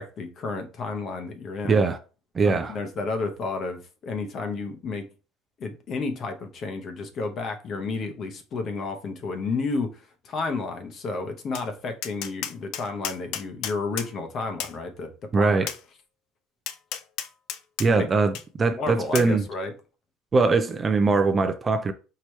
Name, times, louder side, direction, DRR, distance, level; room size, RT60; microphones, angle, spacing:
voice 1, 0.0-1.8 2.4-5.1 5.6-15.7 17.9-18.1 18.8-19.7, left 3 dB, 40° left, 0.8 m, -31 dB
voice 2, 1.7-2.0 2.3-2.8 15.3-15.7 17.8-19.5 20.3-21.9, right 4 dB, 25° right, 0.4 m, -21 dB
Tap, 11.5-11.7 12.0-14.1 14.6-14.8 15.7-15.8 16.7-17.9 18.3-18.4 19.1-19.3, left 10 dB, 70° left, 0.4 m, -32 dB
4.7 x 2.9 x 3.1 m
cardioid pair, 135°, 0 cm